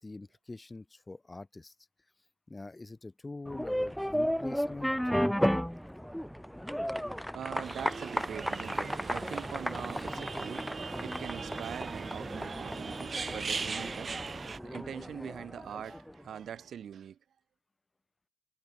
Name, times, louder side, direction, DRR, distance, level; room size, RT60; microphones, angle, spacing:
voice 1, 0.0-1.7 2.5-5.0, left 2 dB, 20° left, 3.0 m, -44 dB
sound 1, 3.5-16.2, equal, ahead, 1.8 m, -34 dB
voice 2, 7.3-10.7 11.0-17.2, right 8 dB, 60° right, 4.2 m, -43 dB
sound 2, 7.6-14.6, right 5 dB, 35° right, 0.4 m, -39 dB
cardioid pair, 90°, 0 cm